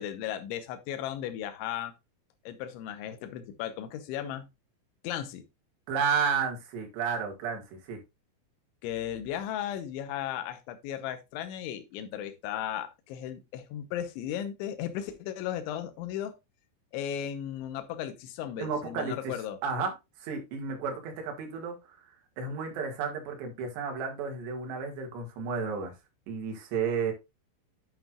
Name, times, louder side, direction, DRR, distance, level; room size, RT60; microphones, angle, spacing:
voice 1, 0.0-1.9 2.5-4.5 5.0-5.5 8.8-16.3 16.9-19.6, left 10 dB, 75° left, 3.2 m, -36 dB
voice 2, 5.9-8.0 18.6-19.3 19.6-19.9 20.2-25.9 26.3-27.1, right 5 dB, 65° right, 3.8 m, -32 dB
9.3 x 7.6 x 2.4 m
omnidirectional pair, 5.8 m